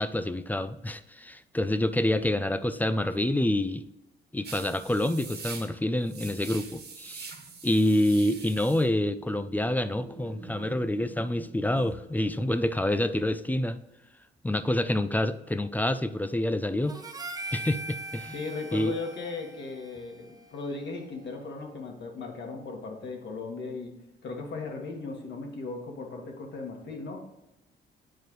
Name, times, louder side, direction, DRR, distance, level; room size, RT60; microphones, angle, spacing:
voice 1, 0.0-3.8 4.3-7.3 7.6-13.8 14.4-17.0 17.5-18.4 18.7-18.9, left 1 dB, 10° left, 11 dB, 0.4 m, -27 dB
sound 1, 4.4-11.9, right 4 dB, 55° right, 1.4 m, -44 dB
Harmonica, 16.9-21.4, right 2 dB, 20° right, 0.7 m, -41 dB
voice 2, 18.3-23.9 24.2-27.2, left 3 dB, 60° left, 1 dB, 1.7 m, -37 dB
9.0 x 4.6 x 3.1 m, 0.91 s
cardioid pair, 90°, 20 cm